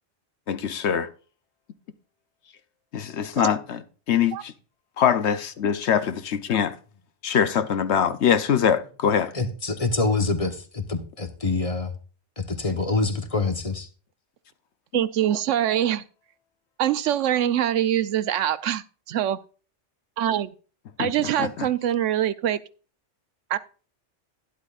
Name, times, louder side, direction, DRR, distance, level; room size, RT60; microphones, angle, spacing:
voice 1, 0.5-1.1 2.9-3.8 4.1-4.5 5.0-6.8 7.2-9.3 14.9-15.0 21.0-21.7, left 8 dB, 65° left, 1.0 m, -23 dB
voice 2, 9.3-11.9 12.4-13.9, left 3 dB, 30° left, 1.1 m, -26 dB
voice 3, 14.9-16.0 16.8-19.4 20.2-20.5 21.0-22.6 23.5-23.6, right 11 dB, 80° right, 1.0 m, -24 dB
12.0 x 10.5 x 2.4 m
omnidirectional pair, 1.3 m